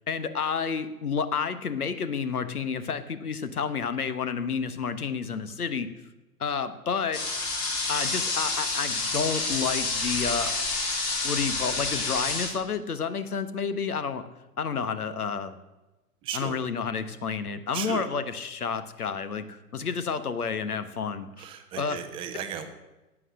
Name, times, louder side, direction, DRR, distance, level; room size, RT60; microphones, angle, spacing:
voice 1, 0.1-5.9 6.4-7.2 7.9-10.6 11.2-14.2 14.6-15.6 16.3-21.5 21.8-22.0, left 6 dB, 70° left, 12 dB, 1.3 m, -30 dB
sound 1, 7.1-12.5, left 3 dB, 40° left, 3.7 m, -29 dB
voice 2, 16.2-16.6 17.7-18.1 21.4-22.6, right 9 dB, 10° right, 7 dB, 0.6 m, -35 dB
11.0 x 8.5 x 7.5 m, 1.1 s
figure-of-eight pair, 115°, 47 cm